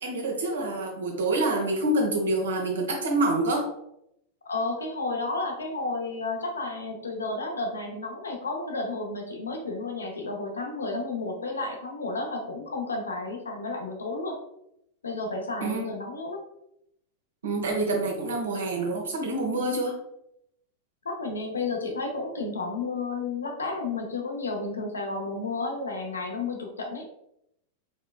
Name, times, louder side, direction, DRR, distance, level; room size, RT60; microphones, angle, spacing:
voice 1, 0.0-3.7 15.6-15.8 17.4-20.0, right 2 dB, 65° right, 1 dB, 0.9 m, -27 dB
voice 2, 4.5-14.4 15.0-16.4 21.0-27.1, left 3 dB, 75° left, 2 dB, 0.7 m, -32 dB
4.2 x 3.0 x 2.3 m, 0.79 s
figure-of-eight pair, 90°, 0 cm